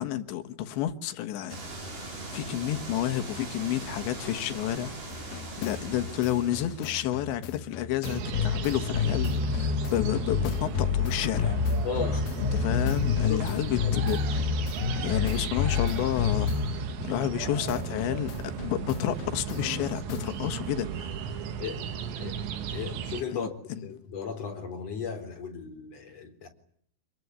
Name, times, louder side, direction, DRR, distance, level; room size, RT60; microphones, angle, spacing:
voice 1, 0.0-1.6 1.8-11.6 12.4-14.4 15.0-16.7 17.0-18.3 18.6-21.4 23.3-23.9, left 12 dB, 85° left, 3.7 m, -31 dB
sound 1, 1.5-6.9, right 2 dB, 50° right, 7.1 m, -40 dB
sound 2, 5.1-17.4 17.7-20.4, left 6 dB, 65° left, 2.9 m, -30 dB
sound 3, 8.0-23.2, right 7 dB, 90° right, 4.0 m, -36 dB
voice 2, 11.8-12.3 13.3-13.9 21.6-21.8 22.1-22.4 22.7-26.5, left 6 dB, 35° left, 4.9 m, -36 dB
27.0 x 21.5 x 9.8 m
omnidirectional pair, 5.0 m